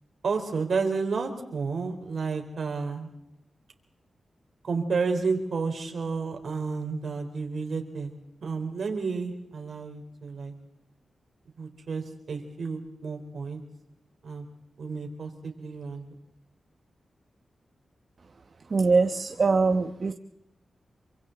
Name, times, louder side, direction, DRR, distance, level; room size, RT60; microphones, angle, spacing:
voice 1, 0.2-3.1 4.6-8.1 8.4-10.5 11.6-13.6 14.2-14.5 14.8-16.0, right 4 dB, 70° right, 4 dB, 3.9 m, -31 dB
voice 2, 18.7-20.1, right 4 dB, 50° right, 7 dB, 1.0 m, -22 dB
27.0 x 24.5 x 4.0 m, 0.86 s
cardioid pair, 75°, 0 cm